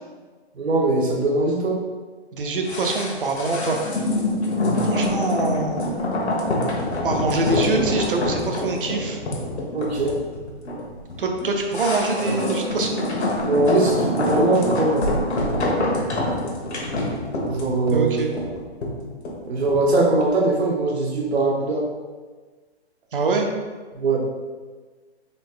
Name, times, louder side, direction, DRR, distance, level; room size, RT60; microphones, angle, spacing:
voice 1, 0.6-1.8 4.6-5.0 9.7-10.2 13.4-15.0 17.4-18.1 19.5-21.9 23.9-24.2, right 2 dB, 70° right, 0 dB, 1.1 m, -21 dB
voice 2, 2.3-3.8 4.8-5.8 7.0-9.2 11.2-13.0 17.9-18.3 23.1-23.5, right 3 dB, 55° right, 3 dB, 0.7 m, -24 dB
sound 1, 2.7-19.9 20.2-20.3, left 1 dB, 75° left, 1.3 m, -25 dB
4.1 x 3.3 x 3.7 m, 1.4 s
hypercardioid pair, 170°, 33 cm